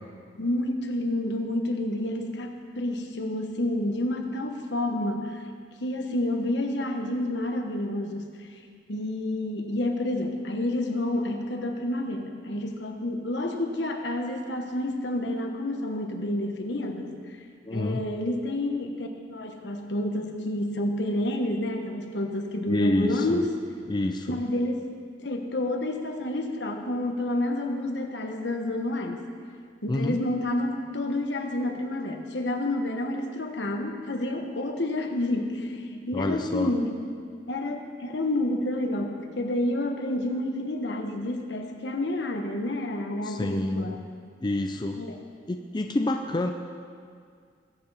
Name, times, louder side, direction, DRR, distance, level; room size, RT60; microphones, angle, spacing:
voice 1, 0.4-5.4 5.8-8.3 8.9-17.1 17.7-23.5 24.3-24.8 25.2-29.3 29.8-37.0 37.5-44.0 44.9-45.1, left 1 dB, 70° left, 3 dB, 1.3 m, -29 dB
voice 2, 17.6-18.0 22.7-23.4 23.9-24.4 29.9-30.2 36.1-36.7 43.2-43.9 44.4-45.0 45.5-46.5, left 1 dB, 25° left, 4 dB, 0.5 m, -28 dB
21.0 x 8.2 x 4.1 m, 2.1 s
head